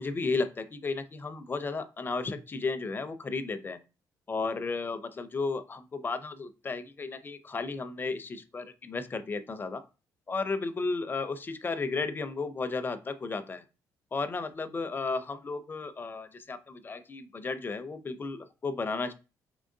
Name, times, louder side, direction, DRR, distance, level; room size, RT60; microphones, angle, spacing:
voice 1, 0.0-3.8 4.3-9.8 10.3-13.6 14.1-19.1, left 4 dB, 30° left, 10 dB, 0.5 m, -34 dB
3.7 x 3.0 x 2.6 m, 0.31 s
cardioid pair, 85°, 7 cm